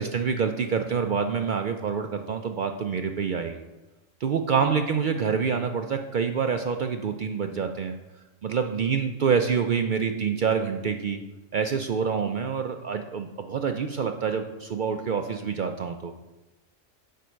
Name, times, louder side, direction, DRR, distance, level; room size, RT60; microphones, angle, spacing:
voice 1, 0.0-3.6 4.2-7.9 8.4-11.2 11.5-16.1, right 6 dB, 75° right, 5 dB, 0.4 m, -27 dB
6.8 x 4.5 x 6.2 m, 1.1 s
omnidirectional pair, 1.4 m